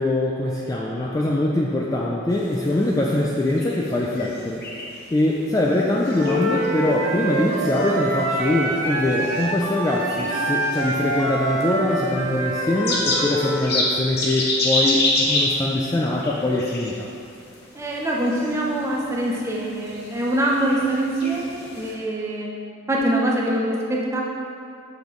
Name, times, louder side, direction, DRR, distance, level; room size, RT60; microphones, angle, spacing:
voice 1, 0.0-4.6 5.1-17.1, left 1 dB, 15° left, -3 dB, 0.3 m, -23 dB
sound 1, 2.3-21.9, left 2 dB, 50° left, 1.0 m, -30 dB
Wind instrument woodwind instrument, 6.0-13.5, right 1 dB, 35° right, 1.4 m, -26 dB
sound 2, 6.9-13.7, right 3 dB, 85° right, 0.6 m, -35 dB
voice 2, 17.7-22.5 22.9-24.2, right 1 dB, 15° right, -3 dB, 0.7 m, -24 dB
7.3 x 5.1 x 3.1 m, 2.5 s
head